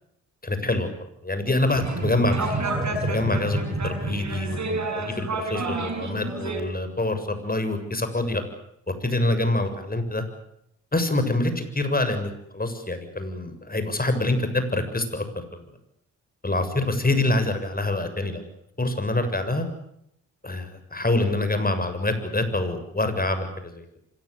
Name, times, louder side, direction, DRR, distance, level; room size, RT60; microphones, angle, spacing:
voice 1, 0.4-0.9 1.2-2.5 3.0-8.4 9.0-10.2 10.9-15.2 15.5-15.6 16.4-18.4 18.8-19.7 20.4-23.8, left 2 dB, 20° left, 9 dB, 7.2 m, -26 dB
sound 1, 1.7-6.6, right 2 dB, 45° right, 6.5 m, -29 dB
25.5 x 19.5 x 9.9 m, 0.76 s
hypercardioid pair, 45°, 40 cm